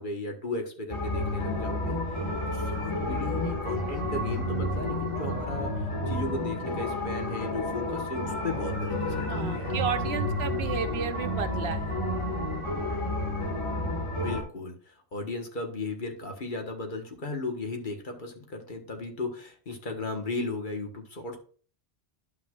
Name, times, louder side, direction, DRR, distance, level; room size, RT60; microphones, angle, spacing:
voice 1, 0.0-2.2 2.5-9.8 10.2-10.3 10.6-10.7 14.2-21.4, left 3 dB, 50° left, 3 dB, 1.5 m, -36 dB
sound 1, 0.9-14.4, left 1 dB, 25° left, 1.9 m, -30 dB
voice 2, 9.3-12.0, right 7 dB, 70° right, 9 dB, 1.0 m, -33 dB
11.5 x 5.7 x 2.4 m, 0.43 s
omnidirectional pair, 1.1 m